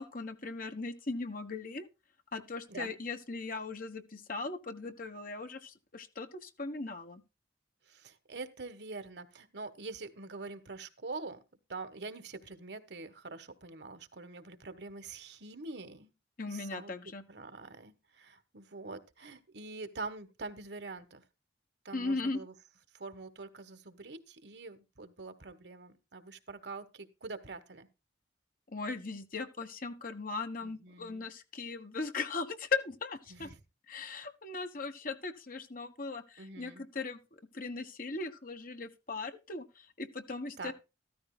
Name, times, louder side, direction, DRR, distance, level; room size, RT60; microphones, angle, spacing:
voice 1, 0.0-1.9 2.3-7.2 16.4-17.2 21.9-22.4 28.7-33.5 33.9-37.2 37.5-40.7, left 3 dB, 50° left, 1.3 m, -38 dB
voice 2, 7.9-11.4 11.7-16.1 16.5-16.9 17.3-21.2 21.8-22.5 22.9-27.9 30.6-31.3 33.3-33.6 36.4-36.8 40.6-40.7, right 3 dB, 65° right, 1.4 m, -45 dB
14.0 x 14.0 x 2.2 m
head